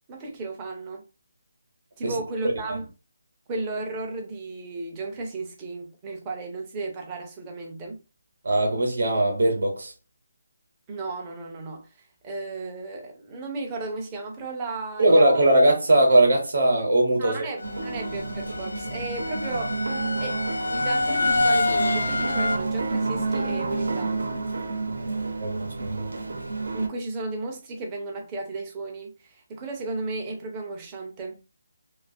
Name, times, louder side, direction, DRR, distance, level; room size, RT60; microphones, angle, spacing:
voice 1, 0.1-1.0 2.0-2.9 3.5-8.0 10.9-11.9 12.2-15.5 17.2-19.8 20.2-24.2 26.7-31.4, right 3 dB, 10° right, 0.4 m, -34 dB
voice 2, 8.4-9.9 15.0-17.4 24.9-26.1, right 1 dB, 45° right, 0.8 m, -20 dB
sound 1, 17.6-22.6, left 2 dB, 85° left, 0.4 m, -27 dB
sound 2, 17.6-26.9, right 3 dB, 80° right, 0.7 m, -30 dB
2.5 x 2.3 x 2.6 m
hypercardioid pair, 180°, 0 cm